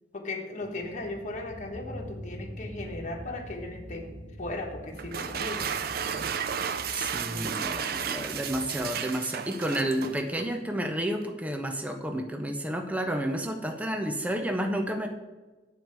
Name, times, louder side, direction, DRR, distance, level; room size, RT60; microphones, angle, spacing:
voice 1, 0.1-4.1 4.4-5.8 7.3-7.5, left 2 dB, 40° left, 2 dB, 1.2 m, -37 dB
sound 1, 0.6-8.8, equal, 75° right, 2.2 m, -44 dB
sound 2, 5.0-10.6, right 7 dB, 55° right, 0.5 m, -33 dB
voice 2, 6.9-15.1, right 1 dB, 10° right, 4 dB, 0.6 m, -31 dB
9.1 x 4.6 x 6.7 m, 1.2 s
head